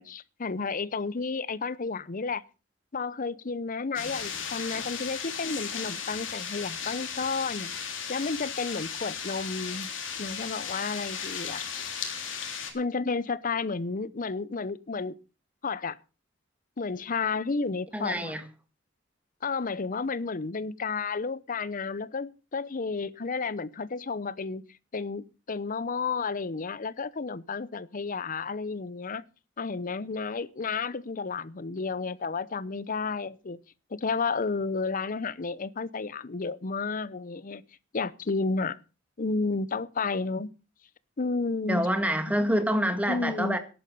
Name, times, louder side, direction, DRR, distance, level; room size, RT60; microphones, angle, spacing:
voice 1, 0.0-2.4 2.9-7.7 8.1-9.9 10.2-11.7 12.7-15.2 15.6-16.0 16.8-18.3 19.4-24.6 24.9-29.2 29.6-33.6 33.9-37.6 37.9-38.8 39.2-40.5 41.2-41.9 42.4-42.5 43.1-43.6, left 4 dB, 45° left, 0.7 m, -32 dB
sound 1, 4.0-12.7, left 7 dB, 75° left, 3.4 m, -36 dB
voice 2, 17.9-18.4 41.7-43.6, equal, 10° right, 1.7 m, -26 dB
13.5 x 11.0 x 5.4 m
head